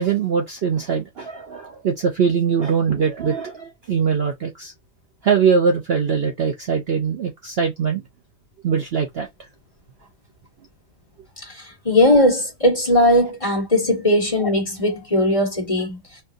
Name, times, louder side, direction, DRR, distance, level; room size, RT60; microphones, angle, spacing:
voice 1, 0.0-4.7 5.2-8.0 8.6-9.3, right 6 dB, 55° right, 0.8 m, -22 dB
voice 2, 11.5-16.0, left 1 dB, 25° left, 1.4 m, -18 dB
4.4 x 3.0 x 2.6 m
omnidirectional pair, 1.5 m